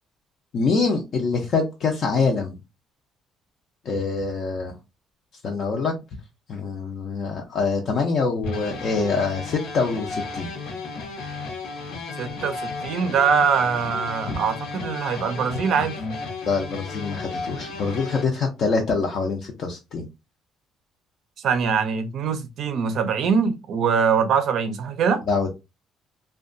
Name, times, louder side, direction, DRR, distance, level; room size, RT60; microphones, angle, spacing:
voice 1, 0.5-2.6 3.9-4.7 5.4-5.9 6.5-10.5 14.3-14.4 16.5-20.1 25.3-25.5, left 4 dB, 40° left, 0.5 m, -25 dB
sound 1, 8.4-18.2, left 3 dB, 80° left, 0.9 m, -34 dB
voice 2, 12.2-15.9 21.4-25.2, right 6 dB, 50° right, 0.5 m, -23 dB
2.8 x 2.2 x 2.5 m
cardioid pair, 165°, 0 cm